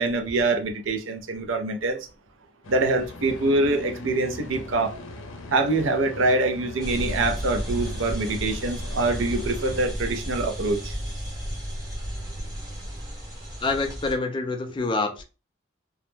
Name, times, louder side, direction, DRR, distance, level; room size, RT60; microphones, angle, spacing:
voice 1, 0.0-2.0 2.7-4.9 5.5-10.9, right 2 dB, 75° right, 0.5 m, -24 dB
sound 1, 2.6-9.8, left 2 dB, 85° left, 0.6 m, -40 dB
sound 2, 6.8-14.1, equal, 20° right, 0.7 m, -33 dB
voice 2, 13.6-15.2, left 3 dB, 25° left, 0.3 m, -26 dB
2.3 x 2.0 x 3.0 m
head